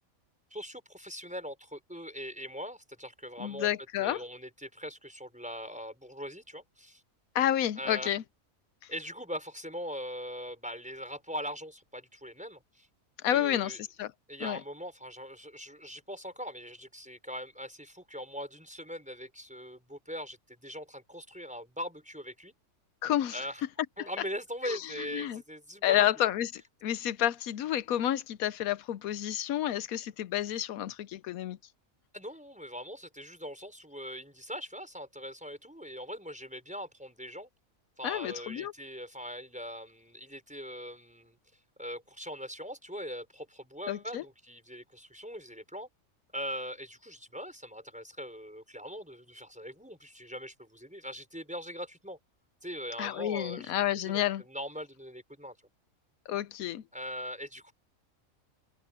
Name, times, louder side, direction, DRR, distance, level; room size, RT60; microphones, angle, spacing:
voice 1, 0.5-3.7 4.0-7.0 7.8-8.1 8.9-12.9 13.3-13.8 14.3-22.5 23.3-23.6 24.0-26.1 32.1-37.5 38.0-41.4 41.8-45.9 46.3-52.2 52.6-53.7 54.0-55.6 56.9-57.7, equal, 5° right, 5.5 m, -41 dB
voice 2, 3.4-4.2 7.3-8.2 13.2-14.1 14.4-14.6 23.0-23.4 24.0-24.1 24.6-25.4 25.8-31.6 38.0-38.7 43.9-44.2 53.0-54.4 56.3-56.8, left 12 dB, 85° left, 1.1 m, -30 dB
open air
omnidirectional pair, 1.5 m